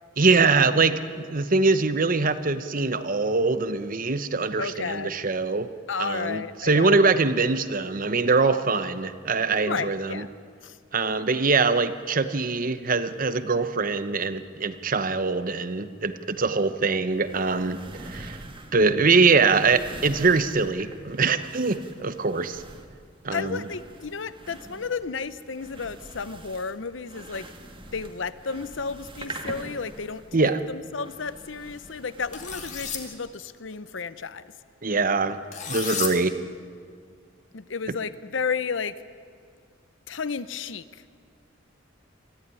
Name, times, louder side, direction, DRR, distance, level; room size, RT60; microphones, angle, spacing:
voice 1, 0.2-5.7 6.0-10.2 10.9-18.4 18.7-22.6 23.2-23.6 30.3-30.6 34.8-35.4 35.7-36.3, right 4 dB, 45° right, 12 dB, 0.9 m, -23 dB
voice 2, 4.6-5.2 5.9-7.2 9.6-10.3 10.6-10.8 23.3-27.5 27.9-34.5 37.5-39.0 40.1-41.0, left 5 dB, 70° left, 15 dB, 0.8 m, -32 dB
sound 1, 17.1-33.1, right 2 dB, 25° right, 1.7 m, -44 dB
sound 2, 32.3-33.0 35.5-36.1, left 7 dB, 40° left, 2.3 m, -31 dB
23.5 x 14.5 x 9.8 m, 2.1 s
head